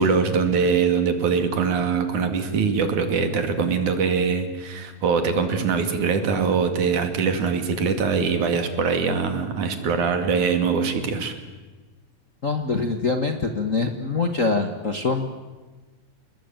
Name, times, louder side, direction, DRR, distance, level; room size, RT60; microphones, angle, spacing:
voice 1, 0.0-11.3, right 5 dB, 80° right, 8 dB, 3.8 m, -22 dB
voice 2, 12.4-15.3, left 3 dB, 40° left, 5 dB, 1.2 m, -24 dB
28.5 x 20.0 x 9.0 m, 1.3 s
omnidirectional pair, 3.4 m